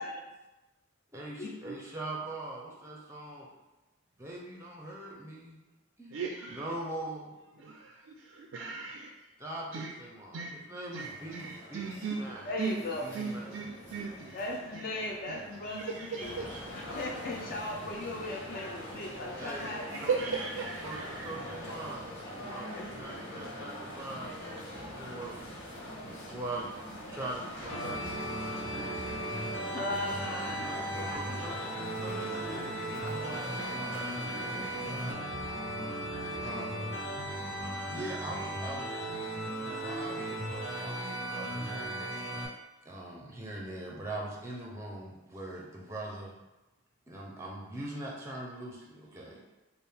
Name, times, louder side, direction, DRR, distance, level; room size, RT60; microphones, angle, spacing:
voice 1, 1.1-3.5 4.2-5.7 6.0-6.2 6.5-7.4 9.4-12.4 13.0-13.6 19.4-19.7 20.0-20.2 20.8-24.3 24.8-25.4 26.0-26.7 27.1-29.1 30.6-31.6 32.0-35.2 36.4-36.8 37.9-39.0 39.6-42.2 42.8-46.4 47.1-49.4, right 2 dB, 15° right, -2 dB, 0.5 m, -42 dB
voice 2, 6.1-6.7 7.6-9.1 9.7-9.9 10.3-10.6 10.9-12.2 12.6-12.8 13.1-14.4 14.7-14.9 15.3-17.0 19.3-21.6 25.9-26.2, right 4 dB, 75° right, 0 dB, 0.4 m, -38 dB
sound 1, 11.0-22.0, equal, 5° left, 0.9 m, -52 dB
voice 3, 12.5-13.1 14.3-16.4 16.7-20.1 22.7-23.3 29.7-31.6, left 2 dB, 45° left, 0 dB, 0.4 m, -38 dB
sound 2, 16.2-35.1, equal, 85° left, 1.2 m, -43 dB
sound 3, 27.7-42.5, right 1 dB, 60° left, 1.4 m, -36 dB
4.3 x 2.0 x 3.4 m, 1.0 s
head